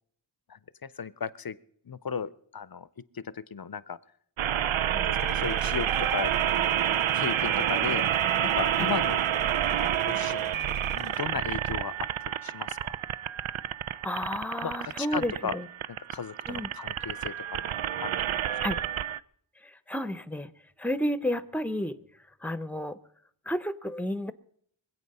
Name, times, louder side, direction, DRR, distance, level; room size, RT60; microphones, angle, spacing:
voice 1, 0.5-1.6 1.9-4.0 4.9-6.3 7.1-8.1 8.4-9.2 9.6-10.6 10.9-11.9 12.4-12.9 14.6-15.6 15.9-17.7 18.0-18.4, left 6 dB, 50° left, 19 dB, 0.6 m, -36 dB
sound 1, 4.4-19.2, right 10 dB, 80° right, 0.5 m, -29 dB
sound 2, 5.2-11.2, right 3 dB, 55° right, 1.7 m, -47 dB
voice 2, 14.0-15.7 16.5-16.7 18.6-18.8 19.9-20.5 20.8-22.0 22.4-23.0 23.5-24.3, equal, 5° left, 15 dB, 0.8 m, -31 dB
24.0 x 8.4 x 5.5 m, 0.64 s
wide cardioid pair, 50°, 48 cm